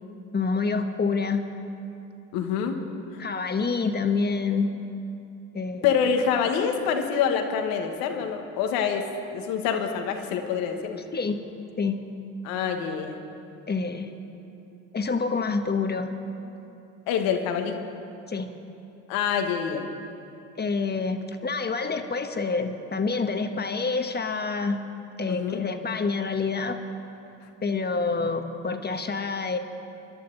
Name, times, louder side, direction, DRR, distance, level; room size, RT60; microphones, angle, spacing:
voice 1, 0.3-1.4 3.2-4.7 5.5-5.9 11.1-11.4 11.8-12.0 13.7-14.1 14.9-16.1 18.3-18.5 20.6-24.8 25.2-26.8 27.6-29.6, left 4 dB, 25° left, 6 dB, 1.3 m, -27 dB
voice 2, 2.3-2.8 3.1-3.2 5.8-11.0 12.4-13.2 17.1-17.8 19.1-19.9 25.3-25.6, left 7 dB, 75° left, 5 dB, 1.4 m, -26 dB
26.0 x 11.5 x 3.9 m, 2.8 s
hypercardioid pair, 60°, 36 cm